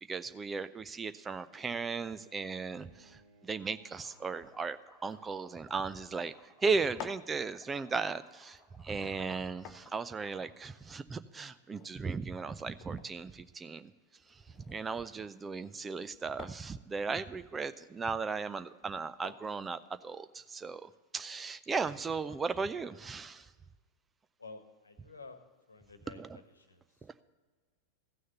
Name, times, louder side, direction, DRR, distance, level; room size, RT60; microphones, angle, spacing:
voice 1, 0.1-6.3 6.6-13.9 14.3-23.5 26.2-26.3, right 4 dB, 15° right, 13 dB, 0.4 m, -36 dB
Bowed string instrument, 1.6-4.8, right 2 dB, 70° right, 3.2 m, -63 dB
sound 1, 3.9-7.3 7.5-10.5, equal, ahead, 2.6 m, -59 dB
sound 2, 7.0-20.6, left 8 dB, 35° left, 0.7 m, -55 dB
voice 2, 24.4-25.4 25.7-26.4 26.7-26.8, left 3 dB, 75° left, 8 dB, 1.2 m, -50 dB
15.0 x 6.4 x 6.8 m, 1.4 s
figure-of-eight pair, 90°, 0 cm